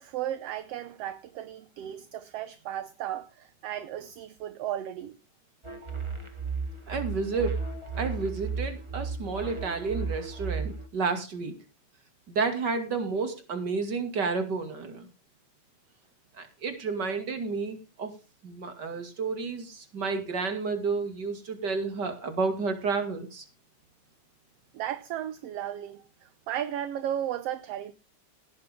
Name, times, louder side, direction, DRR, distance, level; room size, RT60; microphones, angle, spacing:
voice 1, 0.0-5.1 24.7-27.9, right 11 dB, 70° right, 1.7 m, -35 dB
sound 1, 5.6-10.9, right 5 dB, 15° right, 1.3 m, -34 dB
voice 2, 6.9-7.6 8.0-11.6 12.3-15.1 16.4-18.1 18.4-23.4, right 4 dB, 35° right, 2.8 m, -31 dB
17.0 x 9.6 x 3.7 m
omnidirectional pair, 3.3 m